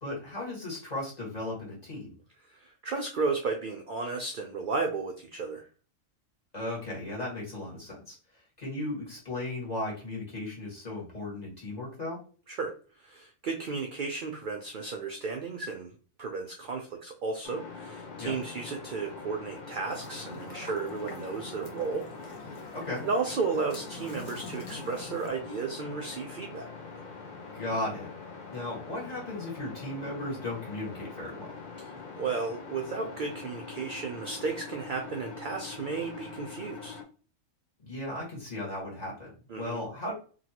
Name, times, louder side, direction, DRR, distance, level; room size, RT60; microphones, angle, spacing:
voice 1, 0.0-2.1 6.5-8.2 8.6-12.2 18.2-18.3 22.7-23.0 27.5-28.1 28.5-31.5 37.8-40.1, left 1 dB, 30° left, -4 dB, 1.6 m, -36 dB
voice 2, 2.5-5.6 12.5-15.9 16.2-22.1 23.0-26.7 31.8-31.9 32.2-37.0 39.5-39.8, right 4 dB, 65° right, 3 dB, 0.5 m, -34 dB
sound 1, 17.4-37.0, left 4 dB, 50° left, 0.6 m, -44 dB
sound 2, 19.8-25.3, left 2 dB, 80° left, 1.2 m, -45 dB
3.0 x 2.8 x 2.8 m, 0.38 s
omnidirectional pair, 1.3 m